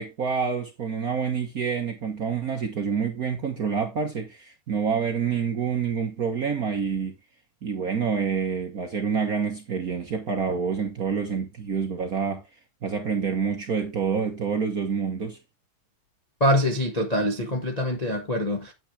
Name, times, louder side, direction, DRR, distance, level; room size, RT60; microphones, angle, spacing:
voice 1, 0.0-7.1 7.6-12.4 12.8-15.4, right 6 dB, 90° right, 0.8 m, -27 dB
voice 2, 16.4-18.7, left 1 dB, 80° left, 0.3 m, -24 dB
9.1 x 8.8 x 3.3 m
omnidirectional pair, 3.5 m